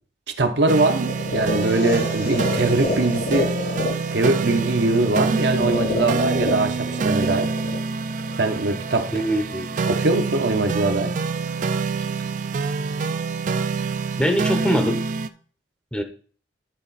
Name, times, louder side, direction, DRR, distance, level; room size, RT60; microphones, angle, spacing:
voice 1, 0.3-3.5 4.1-7.5 8.4-9.1 9.9-11.2, right 2 dB, 70° right, 0.9 m, -22 dB
sound 1, 0.7-15.3, right 4 dB, 45° right, 0.4 m, -26 dB
sound 2, 1.1-9.1, left 2 dB, 80° left, 2.4 m, -30 dB
voice 2, 9.1-9.7 14.2-15.0 15.9-16.0, equal, 5° left, 0.7 m, -22 dB
11.0 x 4.1 x 4.1 m
head